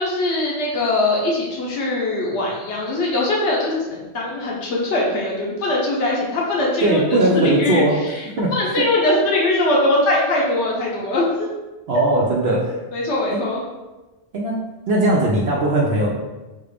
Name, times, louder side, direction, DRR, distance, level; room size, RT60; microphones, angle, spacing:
voice 1, 0.0-7.8 8.5-11.5 11.9-12.0 12.9-13.6, left 2 dB, 75° left, -3 dB, 1.2 m, -21 dB
voice 2, 6.8-8.0 8.4-8.9 11.9-12.7 13.3-13.4 14.3-16.1, right 1 dB, 70° right, -3 dB, 0.9 m, -19 dB
5.6 x 2.5 x 3.4 m, 1.1 s
omnidirectional pair, 1.2 m